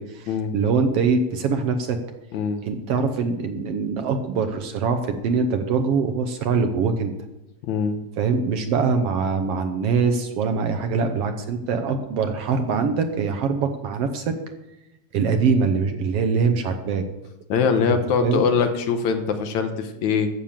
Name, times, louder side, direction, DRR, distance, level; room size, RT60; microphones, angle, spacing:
voice 1, 0.0-2.0 2.6-7.1 8.2-14.4 15.1-17.1 17.9-18.4, right 5 dB, 65° right, 7 dB, 1.7 m, -23 dB
voice 2, 2.3-2.7 7.6-8.0 17.5-20.3, left 5 dB, 75° left, 7 dB, 2.4 m, -22 dB
14.5 x 6.8 x 7.4 m, 0.96 s
omnidirectional pair, 3.3 m